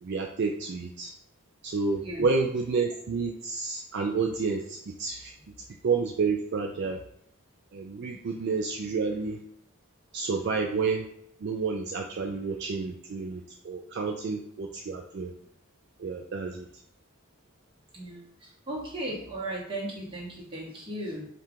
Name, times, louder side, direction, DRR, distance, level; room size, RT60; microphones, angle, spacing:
voice 1, 0.0-1.1 1.6-5.3 5.8-7.0 7.7-9.4 10.1-11.1 11.4-15.3 16.0-16.7, right 4 dB, 50° right, 2 dB, 0.3 m, -30 dB
voice 2, 2.0-2.3 17.9-21.2, right 1 dB, 25° right, -5 dB, 1.3 m, -36 dB
4.5 x 2.5 x 3.5 m, 0.71 s
head